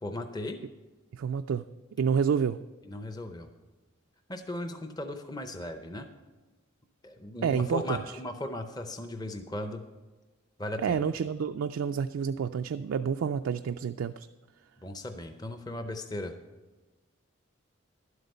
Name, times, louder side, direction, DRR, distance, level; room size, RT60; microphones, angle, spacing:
voice 1, 0.0-0.6 2.8-3.5 4.3-6.1 7.0-9.8 10.6-11.0 14.8-16.3, left 1 dB, 20° left, 7 dB, 0.5 m, -37 dB
voice 2, 1.1-1.7 2.0-2.6 7.4-8.0 10.8-14.3, right 7 dB, 70° right, 8 dB, 0.3 m, -29 dB
11.5 x 8.0 x 5.4 m, 1.2 s
head